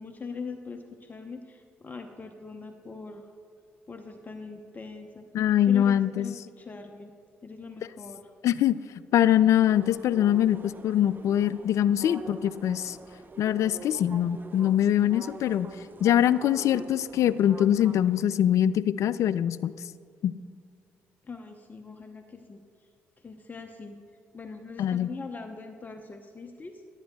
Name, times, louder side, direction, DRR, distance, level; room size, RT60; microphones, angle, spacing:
voice 1, 0.0-3.3 3.9-5.3 5.6-7.1 7.4-8.3 21.2-22.6 23.2-24.0 24.3-26.8, left 4 dB, 30° left, 5 dB, 0.8 m, -41 dB
voice 2, 5.3-6.3 8.4-8.8 9.1-13.0 13.4-15.7 16.0-19.7 20.2-20.3 24.8-25.1, left 11 dB, 65° left, 17 dB, 0.4 m, -23 dB
sound 1, 9.7-18.2, right 3 dB, 35° right, 0.8 m, -45 dB
16.0 x 11.0 x 2.3 m, 2.3 s
hypercardioid pair, 55°, 6 cm